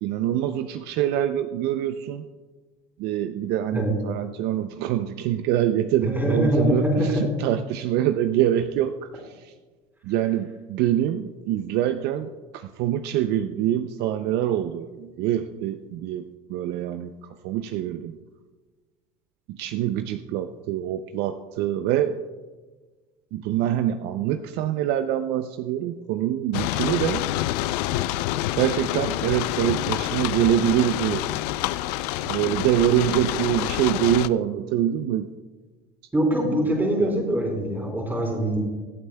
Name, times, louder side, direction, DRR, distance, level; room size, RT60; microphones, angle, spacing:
voice 1, 0.0-2.2 3.0-9.5 10.0-17.1 17.4-18.2 19.5-22.2 23.3-27.3 28.6-31.3 32.3-35.3 37.0-37.2, right 11 dB, 60° right, 10 dB, 0.5 m, -25 dB
voice 2, 6.1-7.2 36.1-38.6, right 1 dB, 10° right, -1 dB, 3.3 m, -23 dB
sound 1, 26.5-34.3, left 15 dB, 85° left, 0.4 m, -27 dB
24.0 x 8.0 x 2.2 m, 1.3 s
supercardioid pair, 125°, 20 cm